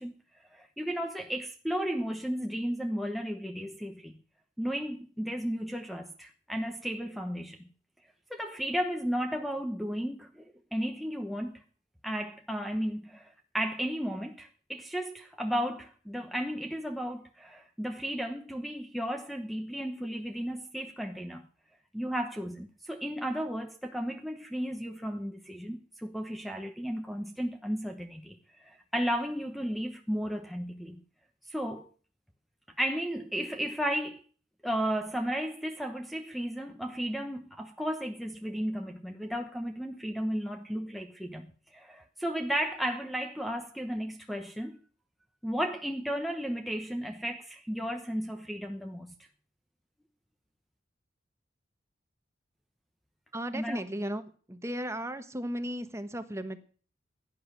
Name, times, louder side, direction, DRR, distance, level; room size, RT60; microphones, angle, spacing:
voice 1, 0.0-4.1 4.6-7.6 8.3-11.6 12.0-21.4 21.9-31.0 31.5-31.9 32.8-34.2 34.6-41.5 41.7-44.8 45.4-49.1 53.5-53.8, equal, ahead, 1.0 m, -34 dB
voice 2, 53.3-54.2 54.5-56.6, equal, 15° right, 1.3 m, -35 dB
16.5 x 10.5 x 6.1 m
head